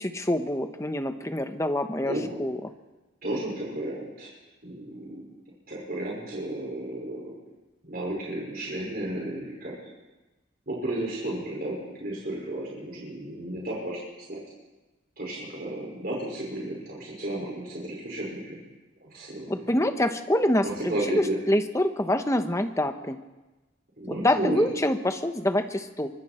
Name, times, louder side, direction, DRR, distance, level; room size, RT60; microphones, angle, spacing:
voice 1, 0.0-2.1 2.4-2.7 19.5-23.2 24.1-26.1, left 1 dB, 15° left, 7 dB, 1.1 m, -26 dB
voice 2, 2.0-2.4 3.2-4.3 4.6-5.2 5.7-7.3 7.8-9.7 10.7-14.0 14.3-14.4 15.2-18.6 19.0-19.7 20.6-21.4 24.0-24.6, right 1 dB, 45° right, -4 dB, 5.7 m, -33 dB
24.5 x 24.0 x 4.5 m, 1.1 s
head